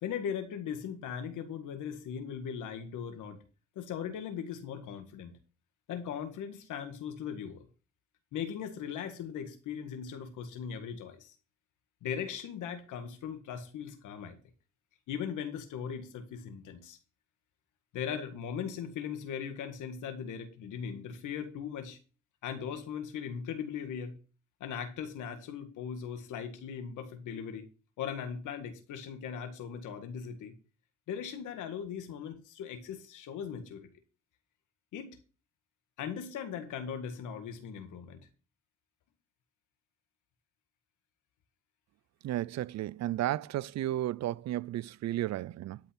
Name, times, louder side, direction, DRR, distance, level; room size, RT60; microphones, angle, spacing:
voice 1, 0.0-3.4 3.7-5.4 5.9-7.6 8.3-11.3 12.0-14.4 15.1-17.0 17.9-22.0 22.4-24.2 24.6-27.7 28.0-30.5 31.1-33.9 34.9-35.2 36.0-38.3, left 7 dB, 85° left, 1.8 m, -39 dB
voice 2, 42.2-45.8, right 14 dB, 60° right, 0.5 m, -33 dB
12.5 x 5.5 x 5.8 m
cardioid pair, 90°, 30 cm